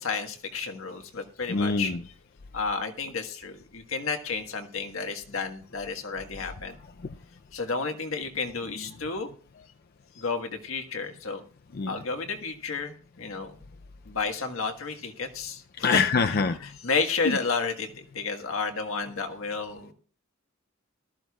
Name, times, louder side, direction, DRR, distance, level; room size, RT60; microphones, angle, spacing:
voice 1, 0.0-1.9 2.5-6.8 7.5-9.3 10.1-11.4 11.9-13.8 14.0-16.0 16.8-19.9, left 4 dB, 80° left, 1.5 m, -31 dB
voice 2, 1.5-2.0 7.0-7.1 11.7-12.0 15.8-16.6 17.2-17.4, left 4 dB, 50° left, 0.5 m, -25 dB
19.0 x 13.0 x 2.4 m
head